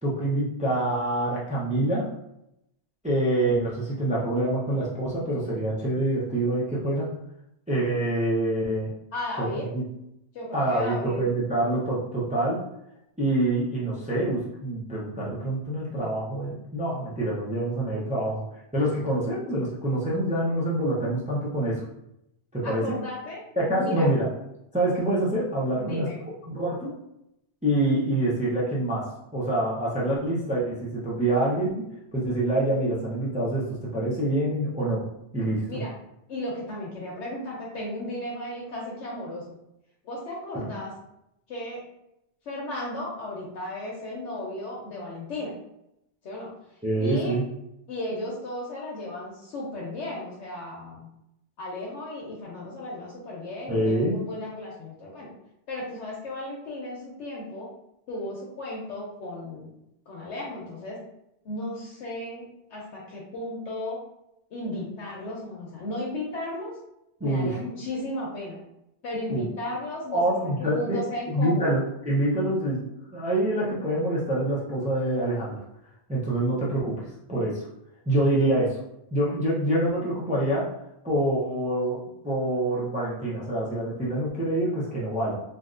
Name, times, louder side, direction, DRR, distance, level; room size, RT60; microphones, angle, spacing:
voice 1, 0.0-2.1 3.0-7.1 7.7-8.9 9.4-9.8 10.5-12.6 13.2-18.4 18.7-21.8 22.5-22.9 23.6-24.3 24.7-26.1 26.5-26.9 27.6-35.1 35.3-35.8 40.5-40.6 46.8-47.4 53.7-54.2 67.2-67.6 69.3-69.5 70.1-72.8 73.1-75.6 76.1-77.0 77.3-77.7 78.1-78.8 79.1-80.7 81.0-85.3, right 1 dB, 10° right, -6 dB, 0.4 m, -26 dB
voice 2, 9.1-9.6 10.3-11.3 22.6-23.4 23.7-24.1 25.7-26.2 35.7-35.9 36.3-39.4 40.0-40.9 41.5-41.8 42.5-45.5 46.2-46.5 47.0-47.3 47.9-51.1 51.6-55.3 55.7-57.7 58.1-59.7 60.1-61.0 61.4-64.0 64.5-66.8 67.2-68.6 69.0-71.7, left 1 dB, 80° left, -4 dB, 1.0 m, -35 dB
3.3 x 2.6 x 2.5 m, 0.82 s
omnidirectional pair, 1.2 m